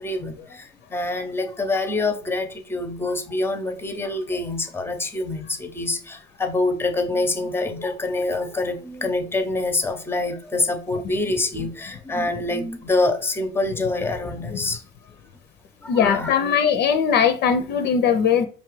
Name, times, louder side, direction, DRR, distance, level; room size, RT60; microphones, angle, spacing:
voice 1, 0.0-14.8 15.8-16.4, left 2 dB, 10° left, 7 dB, 0.6 m, -26 dB
voice 2, 15.9-18.5, left 7 dB, 55° left, 7 dB, 0.5 m, -19 dB
5.3 x 2.3 x 3.2 m, 0.42 s
supercardioid pair, 105°, 21 cm